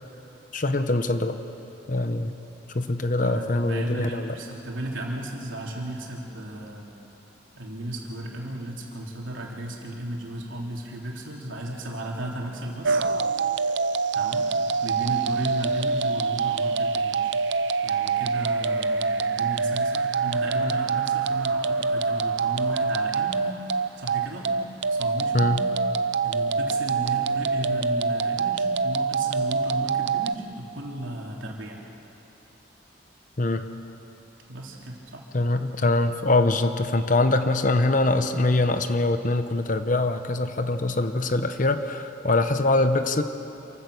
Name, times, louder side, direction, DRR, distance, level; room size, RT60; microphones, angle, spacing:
voice 1, 0.5-1.4 1.9-2.3 2.7-4.4 25.3-25.6 33.4-33.7 35.3-43.2, left 2 dB, 40° left, 9 dB, 0.9 m, -23 dB
voice 2, 3.2-6.9 7.6-13.0 14.1-14.5 14.8-17.3 17.8-23.5 23.9-24.5 24.9-25.6 26.2-31.8 34.5-35.3, right 1 dB, 80° right, -1 dB, 3.2 m, -35 dB
sound 1, 12.8-30.3, right 4 dB, 65° right, 0.5 m, -25 dB
27.0 x 15.5 x 6.4 m, 3.0 s
head